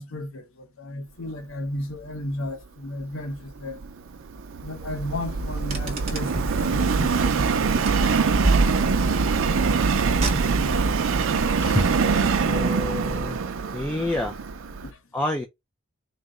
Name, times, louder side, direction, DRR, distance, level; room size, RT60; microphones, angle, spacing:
voice 1, 0.0-3.8 4.6-7.1 11.6-11.9 14.8-15.0, left 1 dB, 70° left, 0.7 m, -34 dB
Subway metro underground, 3.6-14.9, right 5 dB, 65° right, 0.5 m, -24 dB
Car, 5.4-6.6 7.8-9.2 10.0-10.9, right 2 dB, 30° right, 1.0 m, -26 dB
voice 2, 12.4-13.4 13.7-14.4 15.1-15.4, left 1 dB, 10° left, 0.4 m, -27 dB
4.0 x 2.1 x 3.6 m
head